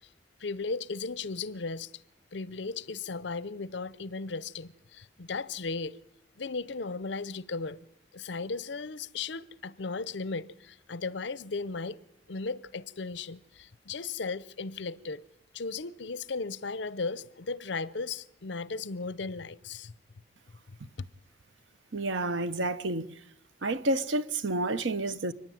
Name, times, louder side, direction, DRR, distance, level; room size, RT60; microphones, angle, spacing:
voice 1, 0.4-1.9 2.3-6.0 6.4-7.8 8.1-12.0 12.3-15.2 15.5-19.9 21.0-21.1, left 4 dB, 70° left, 0.7 m, -36 dB
voice 2, 21.9-23.2 23.6-25.3, right 2 dB, 85° right, 0.9 m, -30 dB
29.0 x 9.9 x 9.2 m
head